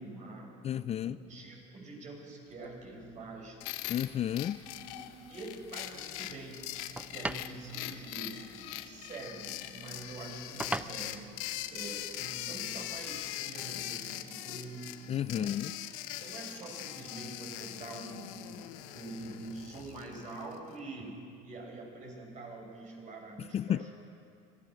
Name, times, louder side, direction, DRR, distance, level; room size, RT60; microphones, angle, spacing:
voice 1, 0.0-0.5 1.0-3.6 4.6-6.7 7.1-11.4 11.7-14.9 15.3-15.6 16.2-18.7 18.9-23.9, right 2 dB, 45° right, 0 dB, 7.1 m, -45 dB
voice 2, 0.6-1.2 3.9-4.6 15.1-15.7 23.4-23.8, left 10 dB, 35° left, 16 dB, 0.4 m, -32 dB
sound 1, 2.5-13.3, right 2 dB, 5° right, 0.6 m, -46 dB
sound 2, 3.6-20.6, left 14 dB, 85° left, 1.1 m, -42 dB
sound 3, 6.2-18.3, right 3 dB, 60° right, 5.1 m, -60 dB
25.5 x 17.0 x 6.4 m, 2.5 s
supercardioid pair, 100°, 18 cm